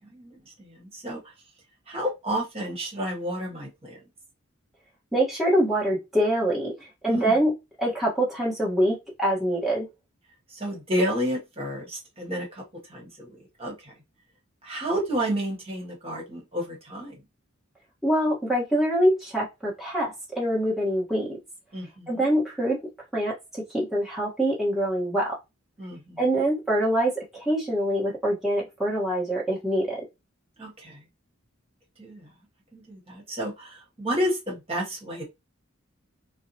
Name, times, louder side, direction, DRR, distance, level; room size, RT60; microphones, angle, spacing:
voice 1, 0.1-1.2 1.9-4.0 7.1-7.3 10.5-12.6 12.9-13.3 13.6-13.9 14.6-17.2 21.7-22.2 25.8-26.2 30.6-31.0 32.0-32.3 32.7-35.2, equal, 30° right, 1.4 m, -31 dB
voice 2, 5.1-7.5 7.8-9.9 18.0-21.3 22.1-22.8 23.1-25.4 26.2-30.0, right 1 dB, ahead, 1.2 m, -25 dB
4.5 x 2.2 x 2.7 m
head